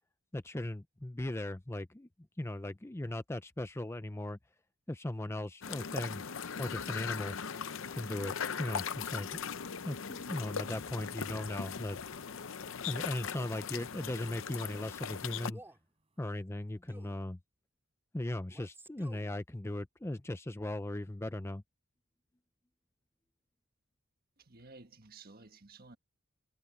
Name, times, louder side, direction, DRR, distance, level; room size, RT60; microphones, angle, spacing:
voice 1, 0.3-2.1 2.4-4.4 4.9-6.2 6.6-7.4 7.9-9.4 9.8-12.0 12.9-15.6 16.2-17.4 18.1-21.6, left 1 dB, 10° left, 0.5 m, -38 dB
sound 1, 5.6-15.5, left 6 dB, 60° left, 0.6 m, -39 dB
sound 2, 10.6-16.5, right 2 dB, 25° right, 4.5 m, -73 dB
Male speech man speaking, 13.5-13.8 14.5-14.8 15.5-15.9 16.9-17.2 18.5-19.3, right 1 dB, 10° right, 3.2 m, -55 dB
voice 2, 24.4-26.0, right 3 dB, 45° right, 1.5 m, -54 dB
head